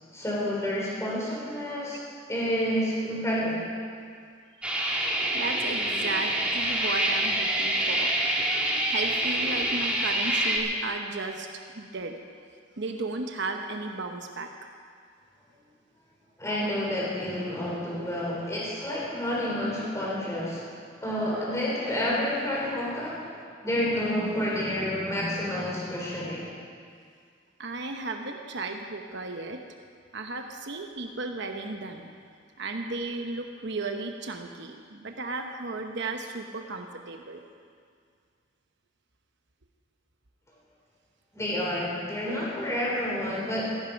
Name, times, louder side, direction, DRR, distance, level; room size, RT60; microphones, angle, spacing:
voice 1, 0.1-2.0 2.3-3.6 16.4-20.6 21.0-26.4 41.3-43.7, left 1 dB, 15° left, -5 dB, 3.8 m, -29 dB
sound 1, 4.6-10.6, right 1 dB, 5° right, 1.9 m, -26 dB
voice 2, 5.3-8.1 8.9-11.5 11.7-12.1 12.8-14.5 27.6-29.6 30.1-32.1 32.6-37.4, right 3 dB, 65° right, 4 dB, 1.0 m, -34 dB
16.5 x 14.0 x 5.3 m, 2.2 s
head